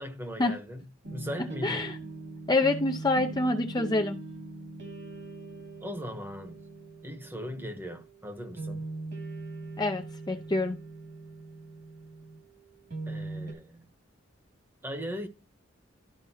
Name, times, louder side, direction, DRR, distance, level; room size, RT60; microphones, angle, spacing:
voice 1, 0.0-1.9 5.8-6.6 7.0-8.8 13.1-13.9 14.8-15.3, equal, 10° right, 1.2 m, -39 dB
sound 1, 1.0-13.5, right 2 dB, 60° right, 2.3 m, -41 dB
voice 2, 1.6-2.0 2.5-4.2 9.8-10.8, left 2 dB, 20° left, 0.7 m, -26 dB
13.0 x 5.2 x 2.8 m
head